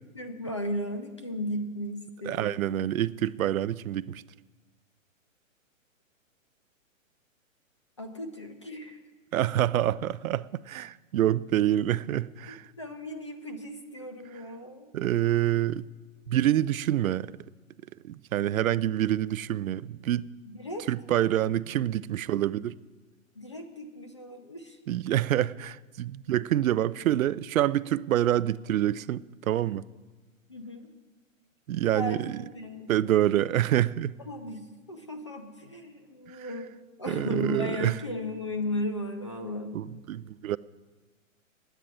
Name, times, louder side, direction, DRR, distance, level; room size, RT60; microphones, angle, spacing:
voice 1, 0.1-2.8 8.0-9.0 12.8-14.9 20.6-20.9 23.4-24.8 30.5-30.9 31.9-32.9 34.3-36.7 37.0-39.9, left 1 dB, 25° left, 0.5 m, -36 dB
voice 2, 2.2-4.2 9.3-12.7 14.9-15.9 16.3-17.3 18.0-20.3 20.9-22.8 24.9-29.9 31.7-32.4 32.9-34.1 36.3-36.5 37.1-38.0 39.7-40.6, right 12 dB, 80° right, 0.5 m, -27 dB
9.1 x 9.0 x 9.7 m
hypercardioid pair, 170°, 40 cm